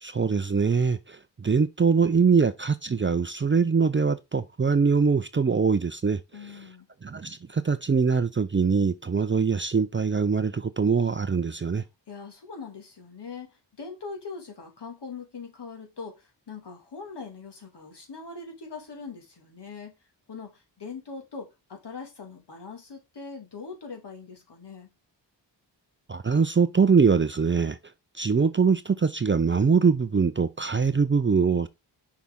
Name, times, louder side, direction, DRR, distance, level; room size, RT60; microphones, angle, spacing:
voice 1, 0.0-6.2 7.0-11.8 26.1-27.8 28.2-31.7, right 5 dB, 25° right, 0.6 m, -23 dB
voice 2, 6.3-6.9 12.1-19.9 20.3-24.9, left 4 dB, 60° left, 2.3 m, -41 dB
5.9 x 4.8 x 3.7 m
cardioid pair, 55°, 46 cm